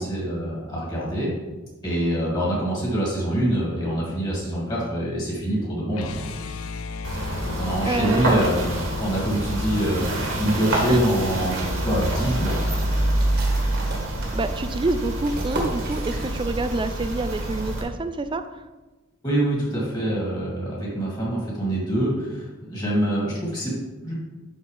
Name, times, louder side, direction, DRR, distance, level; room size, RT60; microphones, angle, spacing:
voice 1, 0.0-1.3 1.8-6.3 7.4-12.6 19.2-24.1, right 1 dB, 20° left, -5 dB, 2.7 m, -25 dB
sound 1, 5.9-12.0, left 4 dB, 90° left, 0.5 m, -35 dB
sound 2, 7.0-17.8, right 1 dB, 85° right, 2.2 m, -26 dB
voice 2, 7.9-8.4 10.9-11.0 14.3-18.4, right 2 dB, 25° right, 10 dB, 0.4 m, -27 dB
sound 3, 13.2-16.8 17.1-17.2 17.6-18.1, right 1 dB, 50° right, 1.6 m, -35 dB
11.5 x 4.3 x 3.4 m, 1.2 s
head